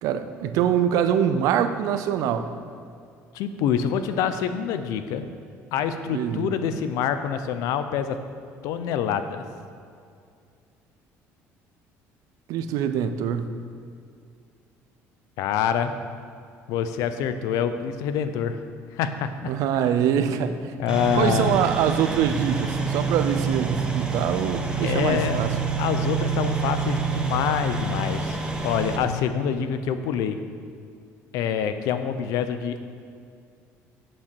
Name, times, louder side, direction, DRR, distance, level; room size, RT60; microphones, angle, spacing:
voice 1, 0.0-2.5 6.1-6.5 12.5-13.6 19.4-20.7 21.1-25.5, right 9 dB, 75° right, 10 dB, 0.6 m, -24 dB
voice 2, 3.3-5.3 5.7-8.2 8.6-9.4 15.4-15.9 16.7-18.6 18.9-19.5 20.8-21.6 24.8-25.4 25.8-28.4 28.6-30.4 31.3-32.8, left 8 dB, 80° left, 10 dB, 0.6 m, -26 dB
sound 1, 20.9-29.0, right 5 dB, 15° right, 1.0 m, -27 dB
8.1 x 5.5 x 6.8 m, 2.3 s
cardioid pair, 115°, 6 cm